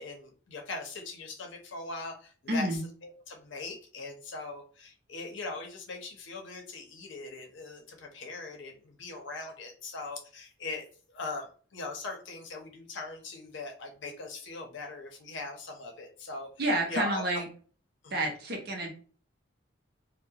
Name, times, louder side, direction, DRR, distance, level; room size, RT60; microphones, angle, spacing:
voice 1, 0.0-2.7 3.0-16.5 16.9-17.2 18.0-18.2, left 3 dB, 75° left, 2 dB, 0.6 m, -40 dB
voice 2, 2.5-2.8 16.6-17.5 18.1-18.9, right 1 dB, 50° right, 2 dB, 0.6 m, -29 dB
2.2 x 2.0 x 2.7 m, 0.42 s
head